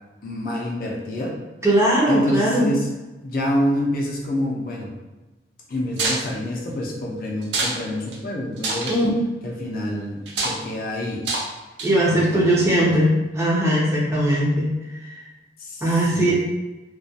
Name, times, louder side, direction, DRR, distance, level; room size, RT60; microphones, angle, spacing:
voice 1, 0.2-1.4 2.1-2.9 3.2-4.9 5.7-8.9 9.4-11.2 12.1-12.4 12.8-12.9 15.6-16.3, left 1 dB, 50° left, -2 dB, 0.5 m, -27 dB
voice 2, 1.6-2.7 8.9-9.0 11.8-14.7 15.0-15.3 15.8-16.3, right 1 dB, 15° right, -5 dB, 0.5 m, -19 dB
sound 1, 6.0-6.2 7.4-7.8 8.1-8.2 8.6-9.0 10.3-10.6 11.2-11.5 11.8-12.1, right 3 dB, 70° right, 0.5 m, -25 dB
2.3 x 2.2 x 2.7 m, 1.1 s
head